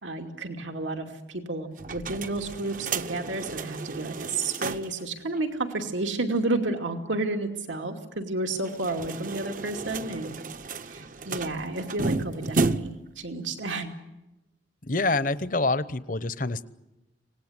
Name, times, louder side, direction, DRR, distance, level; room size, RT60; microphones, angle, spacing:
voice 1, 0.0-10.3 10.8-13.9, right 2 dB, 90° right, 4 dB, 2.6 m, -31 dB
sound 1, 1.8-5.0 5.3-5.4 5.7-5.8 8.5-13.1, right 3 dB, 45° right, 0.8 m, -32 dB
voice 2, 14.8-16.6, left 3 dB, 45° left, 15 dB, 0.9 m, -26 dB
25.5 x 19.0 x 9.7 m, 0.99 s
head